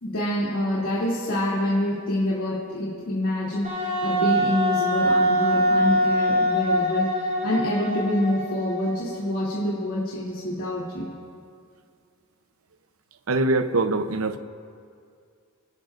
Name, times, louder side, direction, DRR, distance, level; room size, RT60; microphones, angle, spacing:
voice 1, 0.0-11.1, left 1 dB, 65° left, -8 dB, 2.9 m, -26 dB
Wind instrument woodwind instrument, 3.6-9.1, equal, 40° right, 5.3 m, -23 dB
voice 2, 13.3-14.4, right 2 dB, 70° right, 9 dB, 0.8 m, -23 dB
26.5 x 18.5 x 2.6 m, 2.3 s
head